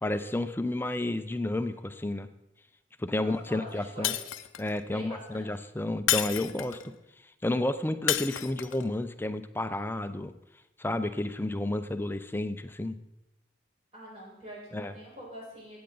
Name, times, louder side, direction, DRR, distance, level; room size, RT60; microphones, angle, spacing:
voice 1, 0.0-2.3 3.0-4.1 4.6-6.8 7.4-10.3 10.8-13.0 14.7-14.9, left 1 dB, 10° left, 10 dB, 0.5 m, -31 dB
voice 2, 3.2-4.2 4.9-5.6 13.9-15.8, equal, 30° right, -5 dB, 5.0 m, -45 dB
Shatter, 4.0-4.8 6.1-6.9 8.1-8.9, left 12 dB, 75° left, 0.6 m, -30 dB
15.5 x 8.7 x 3.9 m, 0.89 s
head